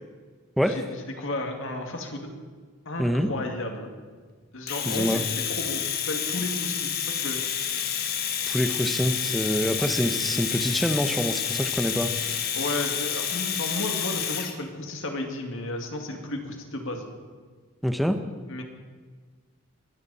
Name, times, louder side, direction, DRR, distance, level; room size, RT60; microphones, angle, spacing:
voice 1, 0.6-2.3 2.9-3.9 4.5-7.4 12.6-17.1 18.5-18.6, left 1 dB, 65° left, 3 dB, 2.3 m, -33 dB
voice 2, 3.0-3.3 4.9-5.2 8.5-12.1 17.8-18.2, equal, ahead, 8 dB, 0.9 m, -25 dB
Domestic sounds home sounds, 4.7-14.6, left 8 dB, 45° left, 1.2 m, -29 dB
23.5 x 13.0 x 4.2 m, 1.5 s
head